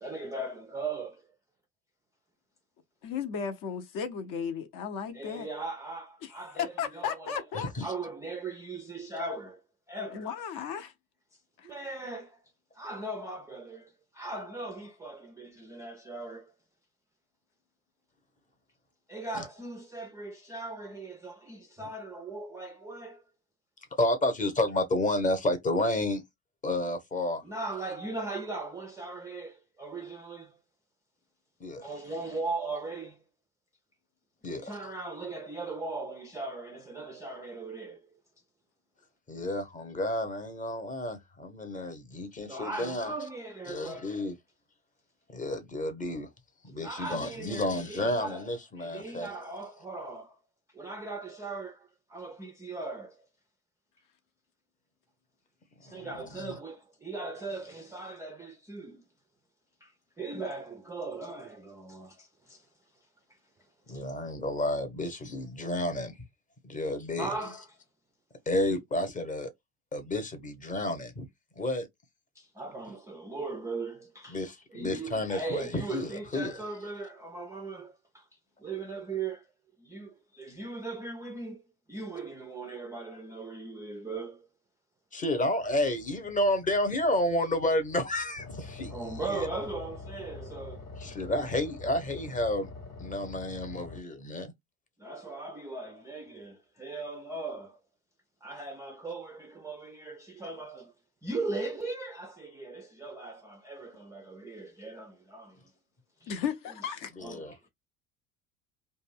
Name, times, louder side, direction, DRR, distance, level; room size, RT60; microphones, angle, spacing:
voice 1, 0.0-1.3 5.1-7.4 7.8-9.6 9.9-10.3 11.6-12.4 12.7-16.5 19.1-23.2 27.4-30.6 31.8-33.2 34.5-38.0 42.1-42.2 42.5-44.3 46.8-48.5 48.8-50.4 50.7-53.2 55.8-59.0 59.8-59.9 60.2-62.7 63.9-64.0 65.0-65.1 67.2-67.7 72.4-74.4 74.7-78.3 78.6-79.5 79.8-81.6 81.9-84.5 88.9-90.9 95.0-97.8 98.4-100.9 101.2-105.6 106.2-106.3 107.2-107.7, right 3 dB, 10° right, 0.3 m, -39 dB
voice 2, 3.0-5.5 6.2-7.7 10.1-10.9 11.6-11.7 106.3-107.1, left 7 dB, 50° left, 0.7 m, -35 dB
voice 3, 7.5-7.9 19.3-19.4 21.8-21.9 24.0-26.2 26.6-27.4 31.6-31.8 34.4-34.7 39.3-43.1 43.7-44.3 45.3-46.3 46.6-49.4 55.9-56.6 63.9-66.1 66.6-67.3 68.5-69.5 69.9-71.3 71.6-71.9 74.3-76.6 85.1-89.5 91.0-92.7 93.0-94.5 107.2-107.5, left 1 dB, 20° left, 0.8 m, -31 dB
sound 1, 85.6-94.0, left 3 dB, 80° left, 1.1 m, -46 dB
2.5 x 2.2 x 3.1 m
hypercardioid pair, 70°, 42 cm